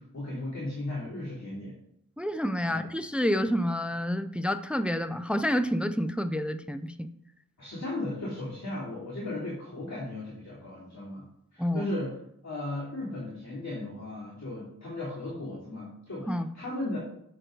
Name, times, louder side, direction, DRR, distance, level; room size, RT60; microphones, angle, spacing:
voice 1, 0.0-1.7 2.6-2.9 7.6-11.3 11.5-12.1 12.4-17.0, left 1 dB, 50° left, -9 dB, 3.0 m, -36 dB
voice 2, 2.2-7.1 11.6-11.9 16.3-16.5, equal, 5° right, 10 dB, 0.5 m, -28 dB
7.7 x 6.7 x 3.9 m, 0.75 s
wide cardioid pair, 50°, 35 cm